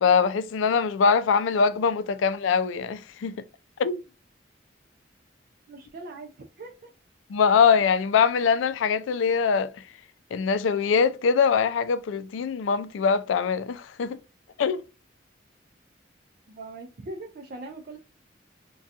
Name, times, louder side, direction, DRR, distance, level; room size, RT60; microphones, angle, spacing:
voice 1, 0.0-3.4 3.8-4.0 7.3-9.7 10.3-14.2 14.6-14.8, left 6 dB, 85° left, 0.3 m, -23 dB
voice 2, 5.7-6.9 16.5-18.0, right 2 dB, 50° right, 0.4 m, -41 dB
2.7 x 2.3 x 3.4 m
head